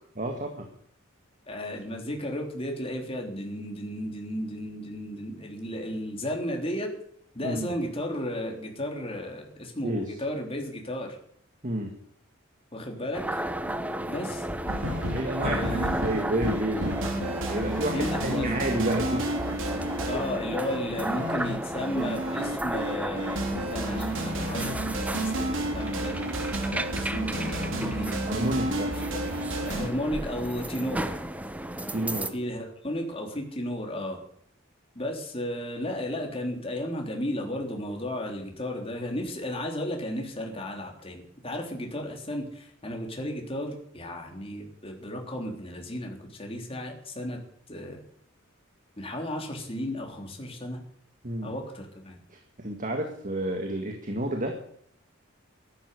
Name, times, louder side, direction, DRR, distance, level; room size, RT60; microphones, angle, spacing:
voice 1, 0.2-0.7 7.4-7.7 9.8-10.1 11.6-12.0 13.7-13.8 15.1-17.0 17.5-19.3 28.3-28.9 31.9-32.3 51.2-51.5 52.3-54.6, right 1 dB, 40° right, 3 dB, 2.0 m, -30 dB
voice 2, 1.5-6.9 7.3-11.2 12.7-13.4 14.1-14.4 15.4-16.0 17.9-18.5 20.0-26.6 27.0-28.2 29.1-29.2 29.6-31.2 32.3-34.2 34.9-47.4 47.7-48.0 49.0-50.8 51.4-52.2, left 1 dB, 30° left, 1 dB, 3.5 m, -34 dB
sound 1, 13.1-32.3, right 1 dB, 5° right, 0.8 m, -34 dB
sound 2, 14.6-29.9, right 1 dB, 70° right, 3.3 m, -31 dB
13.5 x 11.5 x 8.3 m, 0.65 s
head